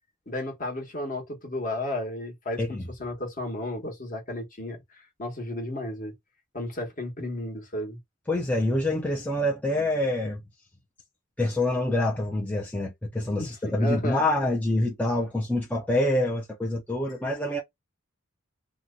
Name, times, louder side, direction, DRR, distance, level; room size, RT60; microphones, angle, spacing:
voice 1, 0.3-6.1 6.5-8.0 13.4-14.3, left 1 dB, 40° left, 1.0 m, -33 dB
voice 2, 8.3-10.4 11.4-17.6, left 1 dB, 5° left, 0.4 m, -26 dB
2.8 x 2.2 x 3.6 m
head